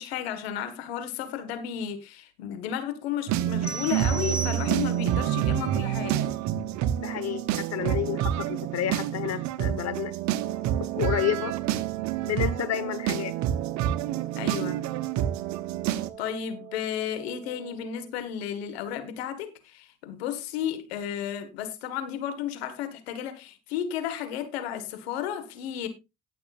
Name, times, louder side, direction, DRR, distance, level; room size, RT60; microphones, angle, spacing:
voice 1, 0.0-6.3 14.3-14.8 16.2-25.9, left 9 dB, 85° left, 1.7 m, -33 dB
sound 1, 3.3-16.1, right 11 dB, 65° right, 0.9 m, -28 dB
sound 2, 3.6-5.2, right 3 dB, 20° left, 1.3 m, -36 dB
voice 2, 7.0-10.1 10.9-11.6 12.2-13.3, left 11 dB, 55° left, 1.3 m, -30 dB
Wind instrument woodwind instrument, 10.3-18.1, right 10 dB, ahead, 7.5 m, -43 dB
18.5 x 6.4 x 2.5 m
hypercardioid pair, 50°, 30 cm